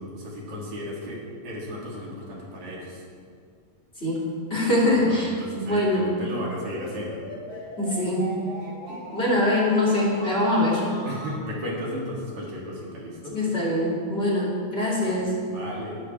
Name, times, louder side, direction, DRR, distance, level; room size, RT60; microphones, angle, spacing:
voice 1, 0.0-3.0 4.9-7.2 11.1-13.4 15.0-15.2 15.5-16.0, equal, 75° right, -4 dB, 4.1 m, -35 dB
voice 2, 4.0-6.1 7.8-8.3 8.9-10.8 13.3-15.4, left 1 dB, 20° left, -5 dB, 3.0 m, -23 dB
sound 1, 6.4-11.4, equal, 55° right, 5.0 m, -39 dB
20.0 x 12.0 x 3.5 m, 2.1 s
omnidirectional pair, 3.3 m